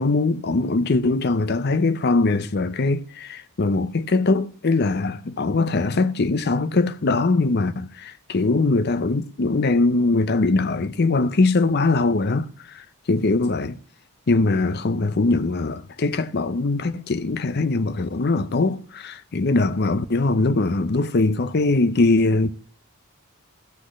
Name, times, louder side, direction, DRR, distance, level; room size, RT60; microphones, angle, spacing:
voice 1, 0.0-12.5 12.7-12.8 13.1-13.8 14.3-22.5, left 3 dB, 50° left, 0.6 m, -21 dB
14.5 x 6.3 x 6.3 m
head